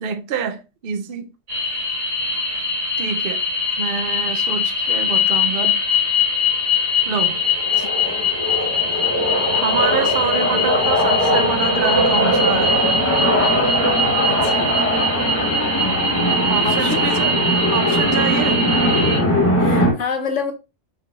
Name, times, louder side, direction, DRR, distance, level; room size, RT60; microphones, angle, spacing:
voice 1, 0.0-1.3 3.0-3.4 3.8-5.8 7.1-7.4 9.5-12.8 16.5-17.4 17.7-18.7, right 7 dB, 55° right, 0.7 m, -26 dB
sound 1, 1.5-19.2, left 3 dB, 75° right, 2.2 m, -22 dB
sound 2, 7.3-19.9, equal, 15° left, 0.9 m, -20 dB
voice 2, 14.3-14.8 16.6-17.0 19.6-20.5, left 5 dB, 75° left, 1.2 m, -27 dB
5.5 x 3.8 x 2.4 m
omnidirectional pair, 1.3 m